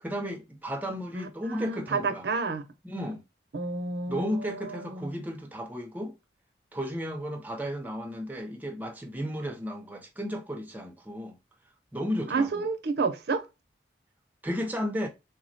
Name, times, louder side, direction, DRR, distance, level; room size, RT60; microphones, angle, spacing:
voice 1, 0.0-2.3 2.8-3.2 4.1-6.1 6.7-11.4 11.9-12.6 14.4-15.1, equal, 10° right, 0.4 m, -34 dB
voice 2, 1.1-2.6 3.5-5.1 12.3-13.5, right 4 dB, 65° right, 0.5 m, -30 dB
3.5 x 2.0 x 2.5 m
head